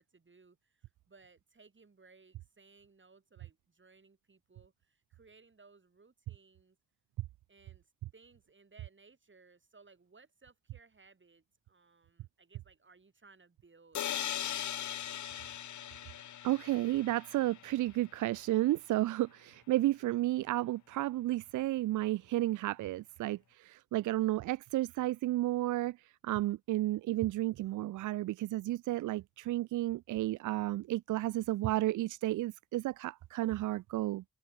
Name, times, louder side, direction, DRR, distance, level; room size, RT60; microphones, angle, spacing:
voice 1, 0.0-6.8 7.5-15.1, right 4 dB, 40° right, 5.6 m, -62 dB
sound 1, 13.9-17.8, left 10 dB, 70° left, 1.4 m, -39 dB
voice 2, 16.4-34.2, right 16 dB, 80° right, 0.6 m, -32 dB
open air
supercardioid pair, 45°, 30 cm